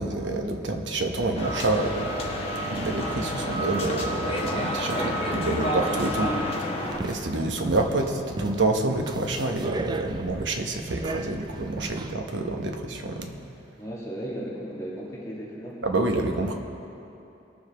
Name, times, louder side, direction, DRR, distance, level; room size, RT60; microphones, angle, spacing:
voice 1, 0.0-2.1 2.7-6.3 7.0-13.3 15.8-16.5, right 2 dB, 90° right, 3 dB, 0.9 m, -27 dB
sound 1, 1.3-7.0, equal, 35° left, 1.3 m, -29 dB
voice 2, 4.9-5.2 13.7-15.8, equal, 20° left, -6 dB, 1.5 m, -35 dB
sound 2, 6.8-12.1, right 2 dB, 25° right, 0.3 m, -36 dB
19.0 x 6.9 x 3.4 m, 2.8 s
head